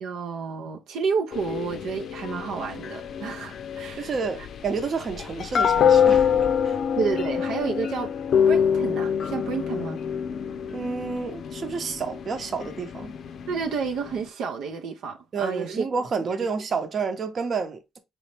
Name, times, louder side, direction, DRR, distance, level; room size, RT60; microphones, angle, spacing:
voice 1, 0.0-4.5 7.0-8.1 8.5-10.0 13.5-15.9 16.2-16.4, right 5 dB, 90° right, 0.6 m, -30 dB
sound 1, 1.3-14.3, left 7 dB, 65° left, 0.5 m, -26 dB
voice 2, 4.0-6.3 6.6-6.8 10.7-13.2 15.3-18.0, right 5 dB, 50° right, 0.8 m, -30 dB
3.9 x 3.1 x 3.3 m
cardioid pair, 90°, 0 cm